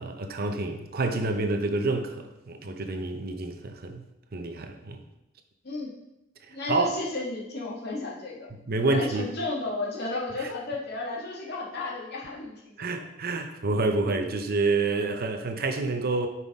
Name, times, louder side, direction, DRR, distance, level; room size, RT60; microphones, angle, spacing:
voice 1, 0.0-4.0 4.3-5.0 6.7-7.0 8.7-9.3 12.8-16.3, right 3 dB, 50° right, 0.8 m, -28 dB
voice 2, 6.5-8.5 8.8-13.1, left 2 dB, 55° left, 2.0 m, -33 dB
9.3 x 5.7 x 3.6 m
head